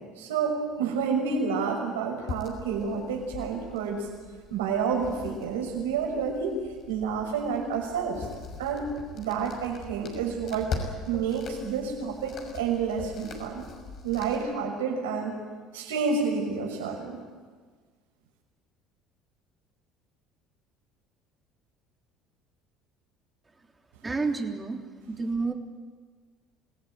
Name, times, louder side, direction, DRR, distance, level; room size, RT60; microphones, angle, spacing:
voice 1, 0.2-4.1 4.5-6.6 6.9-8.3 8.6-10.7 11.1-13.6 14.0-15.3 15.7-17.2, right 5 dB, 90° right, 1 dB, 6.2 m, -29 dB
sound 1, 2.3-14.4, left 4 dB, 55° left, 6.3 m, -41 dB
voice 2, 24.0-25.5, right 4 dB, 20° right, 3 dB, 3.4 m, -30 dB
27.0 x 17.5 x 9.5 m, 1.5 s
hypercardioid pair, 75°, 0 cm